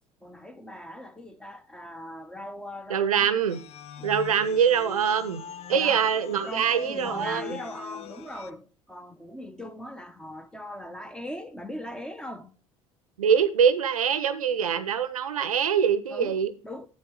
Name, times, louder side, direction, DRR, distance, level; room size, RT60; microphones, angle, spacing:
voice 1, 0.2-3.3 4.0-4.1 5.7-6.1 6.5-12.6 16.1-16.4 16.6-16.9, left 1 dB, 5° left, 0.9 m, -40 dB
voice 2, 2.9-3.6 4.0-5.4 5.7-7.6 13.2-16.5, right 7 dB, 75° right, 0.7 m, -24 dB
sound 1, 3.5-8.5, left 9 dB, 35° left, 0.5 m, -41 dB
7.8 x 7.2 x 4.7 m
figure-of-eight pair, 65°, 18 cm